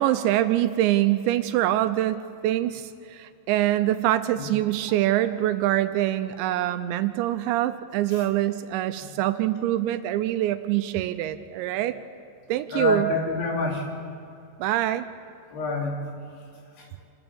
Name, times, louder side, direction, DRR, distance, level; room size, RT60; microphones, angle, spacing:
voice 1, 0.0-11.9 12.5-13.1 14.6-15.1, right 13 dB, 80° right, 11 dB, 2.8 m, -24 dB
voice 2, 12.7-14.0 15.5-16.0 16.8-16.9, left 2 dB, 65° left, 0 dB, 4.4 m, -27 dB
27.0 x 14.0 x 7.1 m, 2.5 s
omnidirectional pair, 5.4 m